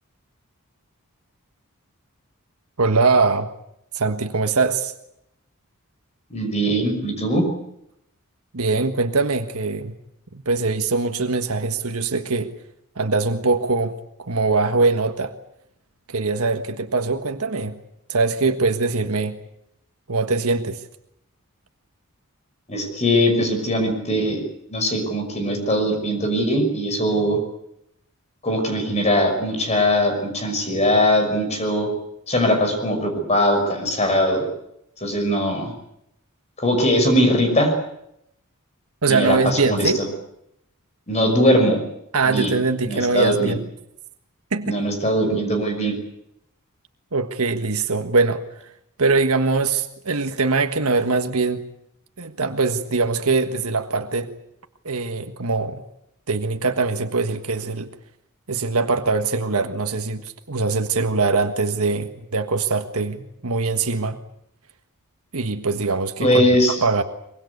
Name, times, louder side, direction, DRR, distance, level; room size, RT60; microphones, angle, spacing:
voice 1, 2.8-3.5 3.9-4.9 8.5-10.0 10.3-12.5 12.9-15.3 16.1-17.8 18.1-19.4 20.1-20.8 39.0-40.0 42.1-43.6 44.5-44.8 47.1-48.7 49.0-51.6 52.2-54.3 54.8-55.8 56.3-57.9 58.5-64.2 65.3-66.5 66.8-67.0, right 3 dB, 80° right, 6 dB, 1.5 m, -22 dB
voice 2, 6.3-7.4 22.7-24.4 24.7-27.4 28.4-31.9 32.3-34.5 35.0-35.7 36.6-37.7 39.1-39.9 41.1-41.8 42.3-42.5 42.9-43.5 44.6-45.9 66.2-66.8, equal, 30° left, 5 dB, 5.8 m, -20 dB
24.0 x 22.5 x 8.3 m, 0.78 s
head